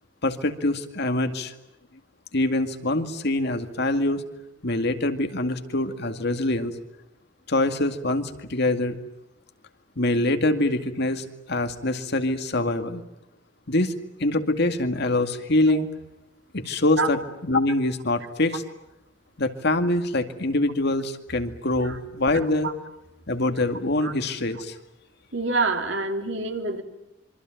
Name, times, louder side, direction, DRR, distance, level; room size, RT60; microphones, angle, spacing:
voice 1, 0.2-1.5 2.3-4.2 4.6-6.7 7.5-9.0 10.0-13.0 13.7-13.9 14.2-15.9 16.5-18.6 19.4-22.7 23.3-24.7, left 2 dB, 55° left, 7 dB, 2.2 m, -24 dB
voice 2, 25.3-26.8, right 3 dB, 65° right, 4 dB, 3.6 m, -26 dB
26.5 x 24.0 x 9.2 m, 0.87 s
head